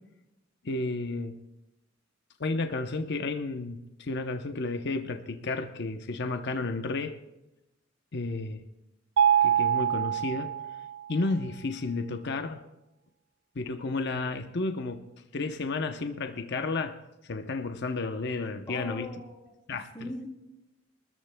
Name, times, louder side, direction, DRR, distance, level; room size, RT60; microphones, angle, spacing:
voice 1, 0.6-1.4 2.4-7.2 8.1-8.6 9.4-10.5 11.1-12.6 13.6-17.0 17.3-19.2 19.7-20.1, left 3 dB, 60° left, 0.8 m, -32 dB
Mallet percussion, 9.2-11.1, right 9 dB, 75° right, 0.4 m, -25 dB
voice 2, 18.7-19.4 19.7-20.3, equal, 15° left, 2.9 m, -40 dB
24.5 x 13.5 x 2.3 m
head